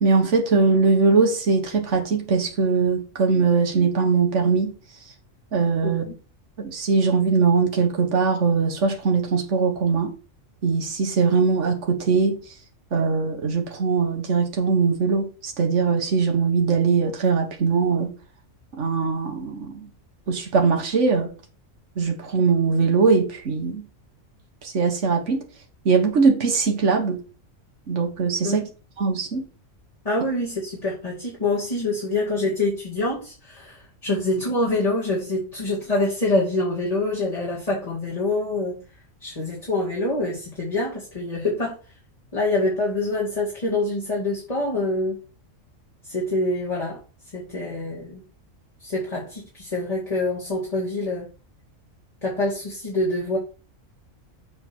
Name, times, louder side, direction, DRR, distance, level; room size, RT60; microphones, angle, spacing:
voice 1, 0.0-4.7 5.5-6.1 6.6-10.1 10.6-12.4 12.9-18.1 18.7-19.7 20.3-21.3 22.0-23.8 24.6-25.4 25.9-27.2 27.9-28.6 29.0-29.4, right 4 dB, 65° right, 1.7 m, -21 dB
voice 2, 5.8-6.1 28.4-28.7 30.0-38.8 39.2-41.8 42.3-45.2 46.0-47.0 47.3-48.2 48.8-51.3 52.2-53.4, left 2 dB, 30° left, 2.3 m, -25 dB
7.7 x 4.0 x 6.0 m
omnidirectional pair, 1.3 m